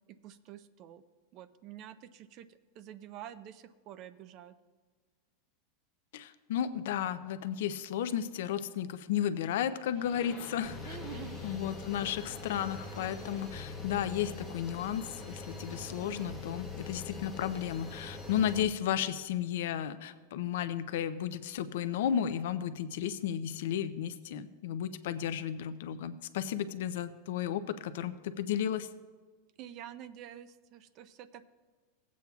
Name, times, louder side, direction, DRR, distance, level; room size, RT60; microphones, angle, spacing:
voice 1, 0.2-1.0 1.3-4.5 10.9-11.4 29.6-31.5, right 10 dB, 30° right, 13 dB, 0.4 m, -48 dB
voice 2, 6.1-11.0 11.4-28.9, left 9 dB, 65° left, 11 dB, 0.4 m, -33 dB
sound 1, 9.8-16.5, left 3 dB, 30° left, 2.4 m, -54 dB
sound 2, 10.6-18.6, left 3 dB, ahead, 0.9 m, -43 dB
17.5 x 8.3 x 2.3 m, 1.5 s
supercardioid pair, 180°, 0 cm